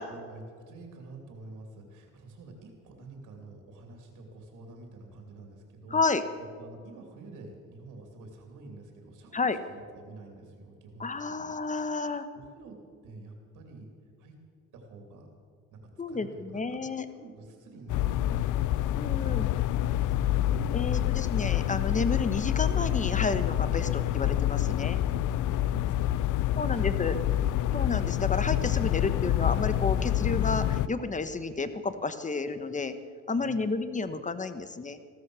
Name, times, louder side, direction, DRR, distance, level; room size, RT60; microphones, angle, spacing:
voice 1, 0.1-6.0 6.6-11.5 12.0-13.9 14.2-14.4 14.7-15.3 15.7-16.8 17.1-18.5 18.8-19.4 19.7-21.2 24.6-24.9 25.5-27.4 33.3-33.6, right 3 dB, 85° right, 3 dB, 2.8 m, -48 dB
voice 2, 5.9-6.2 9.3-9.6 11.0-12.3 16.0-17.0 19.0-19.5 20.7-25.0 26.6-27.2 27.7-32.9 33.3-35.0, left 3 dB, 25° left, 12 dB, 1.1 m, -31 dB
sound 1, 17.9-30.9, left 12 dB, 80° left, 0.5 m, -27 dB
16.0 x 13.5 x 6.3 m, 2.2 s
cardioid pair, 90°, 30 cm